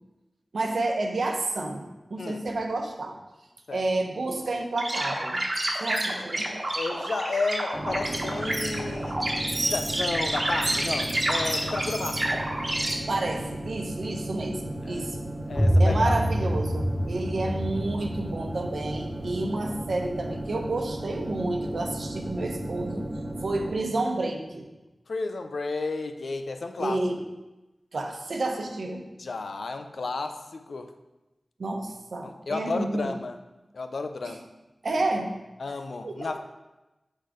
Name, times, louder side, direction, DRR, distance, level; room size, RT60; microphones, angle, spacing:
voice 1, 0.5-3.2 3.7-5.4 5.8-6.5 13.1-15.1 15.8-23.1 23.4-24.7 26.8-27.2 27.9-29.0 31.6-33.1 34.2-34.4 34.8-35.4 36.0-36.4, right 2 dB, 80° right, 2 dB, 0.9 m, -30 dB
sound 1, 4.8-12.9, right 1 dB, 45° right, 1.2 m, -29 dB
voice 2, 6.8-9.3 9.6-12.5 14.8-15.1 15.5-16.2 25.1-27.0 29.2-30.9 32.2-33.4 33.7-34.4 35.6-36.4, left 3 dB, 80° left, 7 dB, 0.5 m, -32 dB
sound 2, 7.7-23.7, right 1 dB, 25° right, 1.3 m, -35 dB
sound 3, 15.6-21.1, equal, 5° left, 0.7 m, -27 dB
6.3 x 4.1 x 5.0 m, 1.0 s
wide cardioid pair, 65°, 0 cm